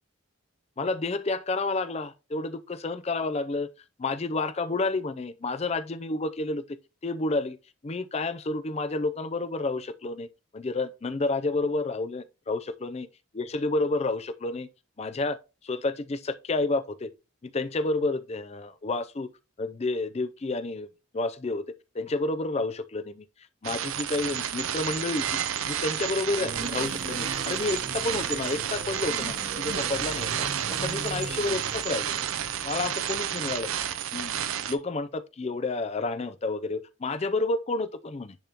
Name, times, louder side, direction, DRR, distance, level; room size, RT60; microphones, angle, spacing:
voice 1, 0.8-3.7 4.0-6.6 7.0-7.6 7.8-10.3 10.5-13.1 13.3-14.7 15.0-15.4 15.6-17.1 17.4-19.3 19.6-20.9 21.1-21.6 21.9-23.3 23.6-25.4 25.7-32.1 32.6-33.7 34.1-34.3 34.7-38.4, left 2 dB, 30° left, 0.4 m, -30 dB
sound 1, 23.6-34.8, right 9 dB, 80° right, 0.6 m, -31 dB
sound 2, 26.4-33.3, right 2 dB, 50° right, 1.2 m, -40 dB
10.5 x 3.6 x 2.9 m
head